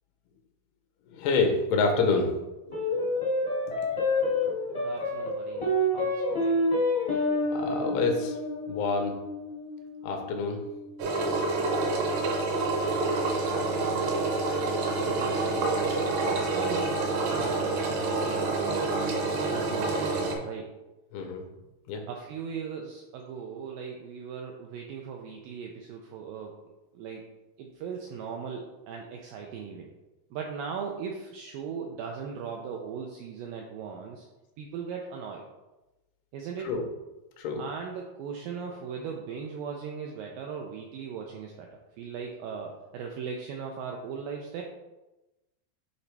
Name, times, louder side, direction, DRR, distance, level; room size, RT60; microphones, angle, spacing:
voice 1, 1.1-2.4 2.6-3.0 4.2-4.4 7.5-8.4 8.7-9.1 10.0-10.6 18.1-18.6 21.1-21.4 21.9-22.0 36.6-36.8 37.4-37.6, left 4 dB, 90° left, 4 dB, 2.9 m, -28 dB
sound 1, 2.7-11.3, left 1 dB, 40° left, 0.4 m, -29 dB
voice 2, 4.6-6.6 11.8-12.0 13.3-14.7 15.0-19.2 19.5-20.7 22.1-26.6 26.9-27.2 27.6-29.9 30.3-34.3 34.6-35.4 36.3-36.7 37.6-44.6, right 6 dB, 90° right, 1 dB, 2.0 m, -39 dB
Engine, 11.0-20.4, right 3 dB, 70° right, 2.3 m, -27 dB
8.3 x 4.1 x 3.4 m, 1.0 s
omnidirectional pair, 4.6 m